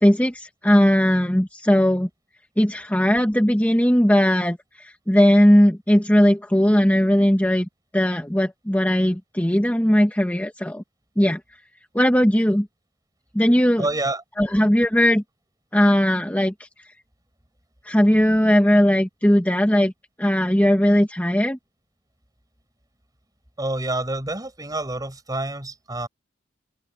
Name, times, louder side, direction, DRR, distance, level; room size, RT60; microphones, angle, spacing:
voice 1, 0.0-2.1 2.6-7.7 7.9-10.8 11.2-11.4 11.9-12.7 13.3-13.9 14.4-15.2 15.7-16.5 17.8-19.9 20.2-21.6, equal, 10° left, 1.6 m, -18 dB
voice 2, 13.8-14.2 23.6-26.1, right 2 dB, 20° right, 6.1 m, -27 dB
head